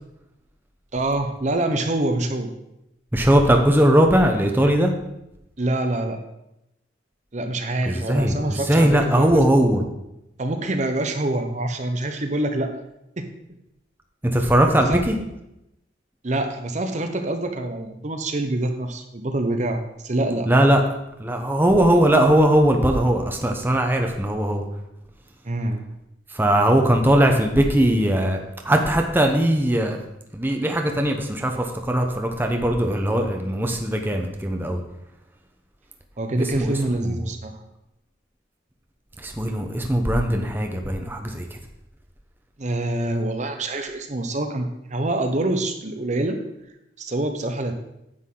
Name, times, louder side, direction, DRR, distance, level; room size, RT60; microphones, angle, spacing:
voice 1, 0.9-2.5 5.6-6.2 7.3-9.8 10.4-12.7 13.2-13.3 14.9-15.0 16.2-20.5 25.4-25.8 36.2-37.6 42.6-46.4 47.0-47.7, right 2 dB, 40° right, 6 dB, 0.8 m, -26 dB
voice 2, 3.1-4.9 7.9-9.8 14.2-15.2 20.5-20.8 21.2-24.6 26.3-28.4 28.6-30.0 30.3-34.8 36.4-37.2 39.2-41.6, right 1 dB, 10° right, 3 dB, 0.8 m, -19 dB
9.9 x 8.1 x 3.8 m, 0.86 s
head